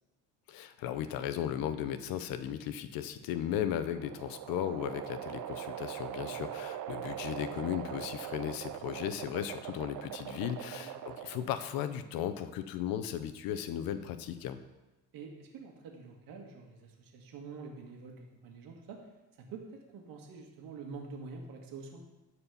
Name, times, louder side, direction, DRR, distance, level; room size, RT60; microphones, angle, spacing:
voice 1, 0.5-14.6, left 10 dB, 85° left, 11 dB, 0.8 m, -36 dB
sound 1, 3.4-11.6, right 11 dB, 65° right, 0.7 m, -42 dB
voice 2, 6.0-6.5 10.7-10.9 15.1-19.0 19.4-22.0, right 4 dB, 80° right, 1 dB, 1.8 m, -47 dB
11.0 x 4.4 x 7.0 m, 1.1 s
cardioid pair, 110°, 34 cm